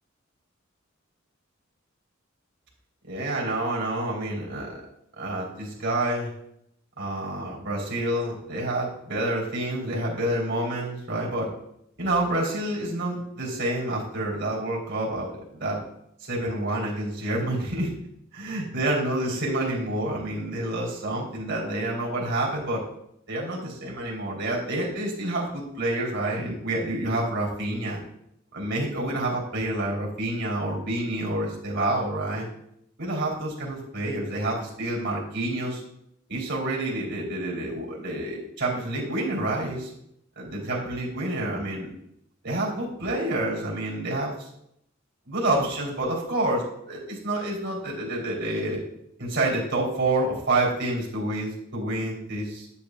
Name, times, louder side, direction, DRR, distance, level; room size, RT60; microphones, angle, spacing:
voice 1, 3.1-4.7 5.2-6.3 7.0-11.5 12.0-15.8 16.2-17.9 18.3-22.8 23.3-28.0 28.5-32.5 33.0-35.8 36.3-39.9 40.4-41.9 42.4-44.3 45.3-48.8 49.2-52.7, right 1 dB, 60° right, -3 dB, 3.3 m, -28 dB
10.5 x 8.7 x 2.3 m, 0.76 s
head